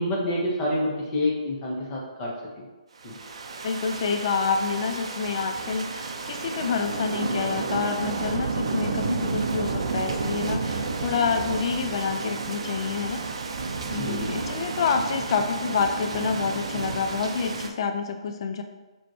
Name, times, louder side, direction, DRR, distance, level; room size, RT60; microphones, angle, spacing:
voice 1, 0.0-2.3 2.6-2.7 3.0-3.2 13.9-14.3, left 1 dB, 25° left, -3 dB, 1.0 m, -28 dB
sound 1, 3.0-17.7, right 4 dB, 60° right, 0.5 m, -31 dB
voice 2, 3.6-13.2 13.9-18.6, left 5 dB, 50° left, 6 dB, 0.3 m, -28 dB
4.1 x 3.0 x 3.1 m, 1.2 s
figure-of-eight pair, 140°, 3 cm